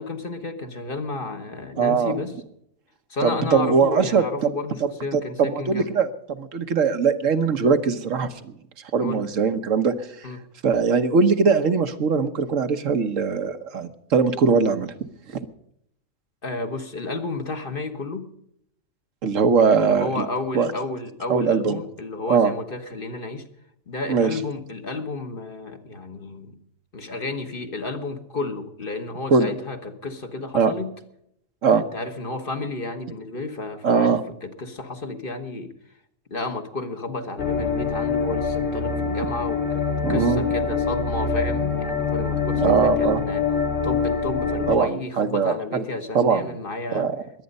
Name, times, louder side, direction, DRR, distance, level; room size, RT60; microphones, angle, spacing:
voice 1, 0.0-2.3 3.1-5.9 9.0-9.2 10.2-10.4 16.4-18.3 19.7-23.5 23.9-26.6 26.9-30.9 31.7-34.2 34.4-35.7 36.3-43.4 43.8-47.1, left 3 dB, 40° left, 6 dB, 1.4 m, -32 dB
voice 2, 1.8-2.2 3.2-4.5 4.8-8.3 8.9-10.3 10.6-14.9 15.3-15.4 19.2-20.2 20.5-20.7 21.3-21.8 22.3-22.5 24.1-24.4 29.3-29.5 30.5-30.7 31.6-31.8 33.8-34.2 40.0-40.4 42.6-43.2 44.7-45.8 46.1-46.4 46.9-47.2, right 5 dB, 70° right, 9 dB, 1.4 m, -21 dB
sound 1, 37.4-44.7, left 5 dB, 70° left, 2.2 m, -24 dB
21.5 x 9.2 x 5.3 m, 0.75 s
omnidirectional pair, 1.4 m